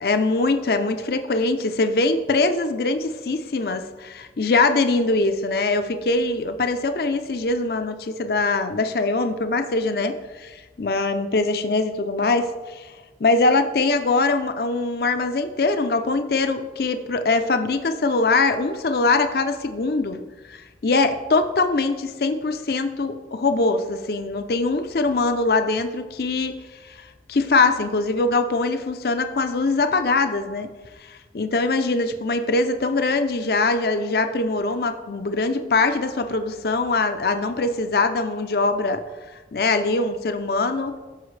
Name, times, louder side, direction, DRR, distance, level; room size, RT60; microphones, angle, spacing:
voice 1, 0.0-12.9 13.2-20.2 20.5-26.6 27.3-30.7 31.1-39.0 39.5-40.9, left 3 dB, 55° left, 8 dB, 0.5 m, -22 dB
13.0 x 5.5 x 3.2 m, 1.2 s
head